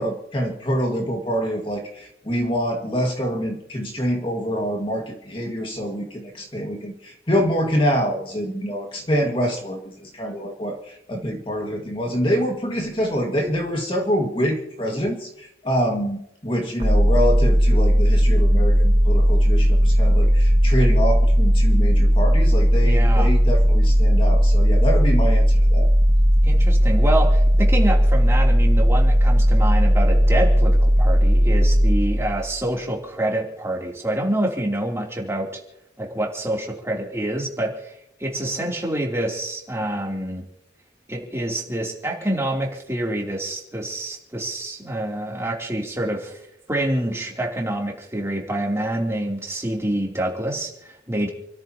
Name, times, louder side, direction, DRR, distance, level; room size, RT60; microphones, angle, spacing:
voice 1, 0.0-25.9, equal, 30° left, 1 dB, 1.9 m, -25 dB
sound 1, 16.8-32.6, equal, 30° right, 1.3 m, -16 dB
voice 2, 22.8-23.3 26.4-35.5 36.0-37.9 38.2-40.4 41.1-46.4 46.7-51.3, right 1 dB, 15° right, -1 dB, 3.1 m, -26 dB
29.0 x 13.5 x 2.9 m, 0.79 s
head